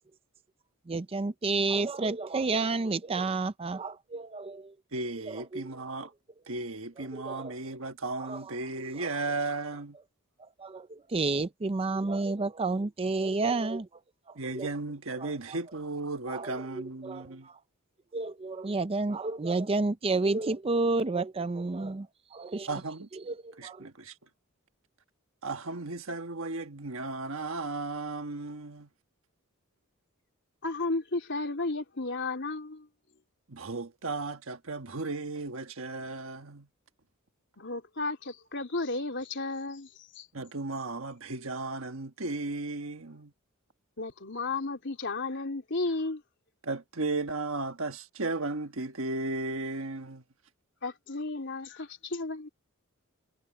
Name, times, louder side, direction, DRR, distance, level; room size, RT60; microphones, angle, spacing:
voice 1, 0.9-4.7 5.2-5.7 7.1-7.5 8.2-8.4 10.6-13.9 14.3-14.7 15.2-15.3 16.3-17.6 18.1-22.7 23.2-23.9, right 3 dB, 25° right, 0.5 m, -31 dB
voice 2, 4.9-6.1 6.5-10.0 14.3-17.5 22.7-23.1 23.6-24.2 25.4-28.9 33.5-36.7 40.3-43.3 46.6-50.2, right 3 dB, 65° right, 1.5 m, -35 dB
voice 3, 30.6-32.9 37.6-40.3 44.0-46.2 50.8-52.5, left 3 dB, 55° left, 3.6 m, -33 dB
head